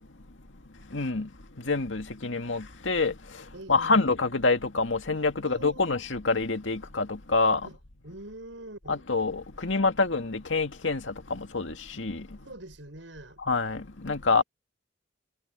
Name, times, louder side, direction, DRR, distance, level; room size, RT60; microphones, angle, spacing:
voice 1, 0.9-1.3 1.7-3.1 3.7-7.7 8.9-12.3 13.5-14.4, left 3 dB, 90° left, 2.0 m, -26 dB
voice 2, 3.5-4.1 5.4-6.0 7.6-7.8 8.0-9.1 12.4-13.4 14.4-14.5, right 1 dB, 85° right, 6.8 m, -44 dB
head